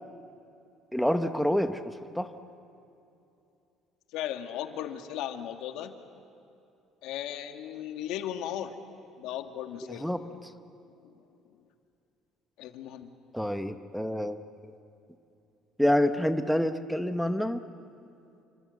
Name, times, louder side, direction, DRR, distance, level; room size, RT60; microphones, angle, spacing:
voice 1, 0.9-2.3 10.0-10.2 13.3-14.4 15.8-17.6, left 1 dB, ahead, 8 dB, 0.8 m, -27 dB
voice 2, 4.1-6.0 7.0-8.8 9.2-10.1 10.8-11.2 12.6-13.1, left 11 dB, 85° left, 6 dB, 1.8 m, -36 dB
29.0 x 25.0 x 8.2 m, 2.7 s
cardioid pair, 170°, 0 cm